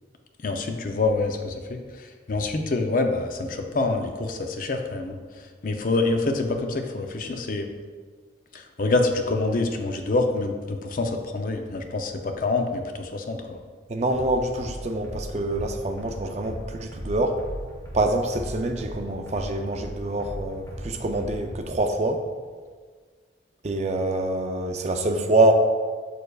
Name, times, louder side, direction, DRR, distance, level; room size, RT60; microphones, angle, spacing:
voice 1, 0.4-5.2 5.6-7.7 8.5-13.6, left 3 dB, 45° left, 4 dB, 0.5 m, -26 dB
voice 2, 13.9-17.4 17.9-22.2 23.6-25.5, right 2 dB, 35° right, 5 dB, 0.4 m, -25 dB
sound 1, 14.1-21.6, equal, 20° left, 1.1 m, -38 dB
6.6 x 6.4 x 2.3 m, 1.6 s
head